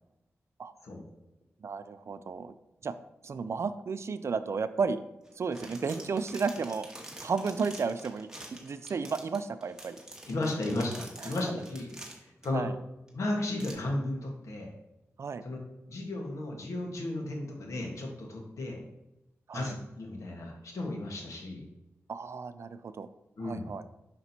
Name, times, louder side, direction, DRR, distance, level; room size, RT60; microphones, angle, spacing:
voice 1, 1.6-2.5 2.8-2.9 3.2-5.0 5.4-6.9 7.2-10.0 11.2-11.4 12.5-12.8 15.2-15.4 19.5-19.8 22.1-23.1 23.4-23.9, right 5 dB, 60° right, 12 dB, 0.4 m, -33 dB
sound 1, 5.3-12.5 13.1-13.2 13.5-13.7, right 1 dB, 10° right, 1.4 m, -47 dB
voice 2, 10.3-11.9 12.2-12.7 13.1-14.7 15.4-15.6 15.9-18.8 19.5-21.6 23.4-23.7, left 2 dB, 75° left, 1 dB, 1.3 m, -34 dB
5.9 x 5.8 x 2.8 m, 0.93 s
cardioid pair, 60°, 5 cm